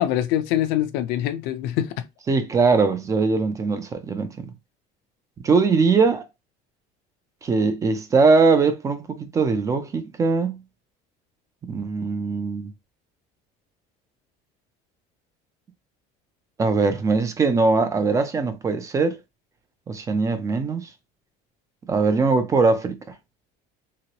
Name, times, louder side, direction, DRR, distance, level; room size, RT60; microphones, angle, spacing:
voice 1, 0.0-2.1, left 12 dB, 75° left, 0.5 m, -24 dB
voice 2, 2.3-4.5 5.4-6.2 7.4-10.6 11.6-12.7 16.6-19.2 19.9-20.9 21.9-23.0, right 4 dB, 20° right, 0.4 m, -21 dB
2.9 x 2.9 x 2.9 m
cardioid pair, 165°, 17 cm